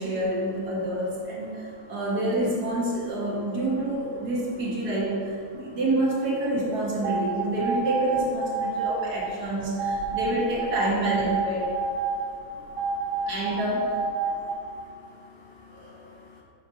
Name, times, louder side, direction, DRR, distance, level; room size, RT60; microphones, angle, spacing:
voice 1, 0.0-11.7 13.3-14.0 15.7-16.0, right 1 dB, 75° right, -5 dB, 2.2 m, -28 dB
sound 1, 7.0-9.3 9.8-12.3 12.8-14.5, right 5 dB, 50° right, 0.7 m, -28 dB
voice 2, 12.2-13.3 14.3-14.8 15.2-15.7 16.2-16.4, left 3 dB, 45° left, -4 dB, 1.0 m, -51 dB
7.6 x 4.5 x 4.8 m, 2.3 s
omnidirectional pair, 1.7 m